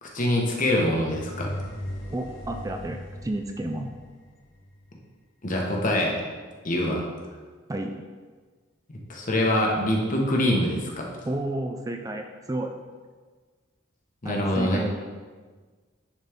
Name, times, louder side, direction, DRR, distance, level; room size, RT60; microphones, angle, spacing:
voice 1, 0.0-1.5 5.4-6.1 6.6-7.0 8.9-11.1 14.2-14.8, left 1 dB, 45° left, -1 dB, 1.2 m, -24 dB
sound 1, 1.0-4.9, equal, 85° left, 1.1 m, -38 dB
voice 2, 2.1-3.9 7.7-8.0 11.3-12.7 14.2-15.0, right 1 dB, 20° right, 4 dB, 0.4 m, -31 dB
10.0 x 4.2 x 3.6 m, 1.4 s
head